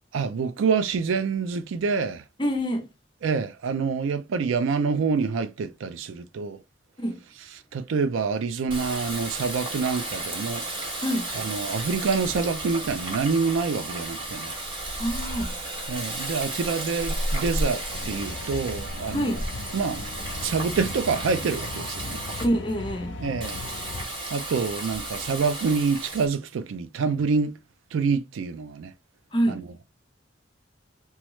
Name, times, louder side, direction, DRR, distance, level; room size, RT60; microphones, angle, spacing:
voice 1, 0.1-2.2 3.2-6.6 7.7-10.6 11.3-14.5 15.9-19.4 19.7-20.1 20.4-22.2 23.2-23.6 24.3-27.5 27.9-28.9, right 5 dB, 90° right, 0.4 m, -26 dB
voice 2, 2.4-2.9 7.0-7.2 11.0-11.3 15.0-15.6 19.1-19.4 22.4-23.1 29.3-29.7, equal, 25° left, 0.6 m, -26 dB
Water tap faucet, 8.7-22.4 23.4-26.3, right 1 dB, 25° right, 0.9 m, -33 dB
sound 1, 17.9-24.0, left 2 dB, 75° left, 0.6 m, -38 dB
3.0 x 2.3 x 3.0 m
head